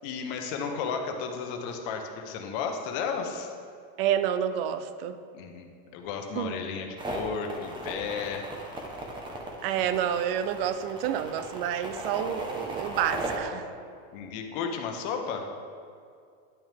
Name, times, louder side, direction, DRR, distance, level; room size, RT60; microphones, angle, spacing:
voice 1, 0.0-3.5 5.3-8.5 14.1-15.5, left 6 dB, 50° left, 4 dB, 1.0 m, -33 dB
voice 2, 4.0-5.2 6.4-6.5 9.6-13.6, right 9 dB, 60° right, 11 dB, 0.5 m, -29 dB
sound 1, 7.0-13.4, right 2 dB, 15° right, 0.9 m, -37 dB
10.5 x 6.2 x 3.5 m, 2.4 s
supercardioid pair, 150°, 32 cm